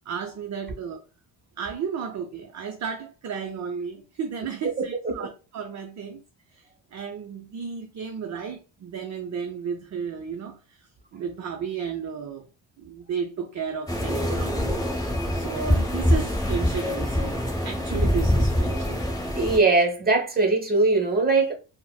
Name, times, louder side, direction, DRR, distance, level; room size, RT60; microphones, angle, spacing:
voice 1, 0.1-1.0 1.6-6.2 6.5-12.5 12.8-14.8 15.3-19.0, right 6 dB, 40° right, 0.5 m, -33 dB
sound 1, 13.9-19.6, left 1 dB, 10° left, 0.9 m, -24 dB
voice 2, 19.4-21.5, right 3 dB, 20° right, 1.0 m, -21 dB
4.0 x 2.1 x 2.2 m
supercardioid pair, 70°, 46 cm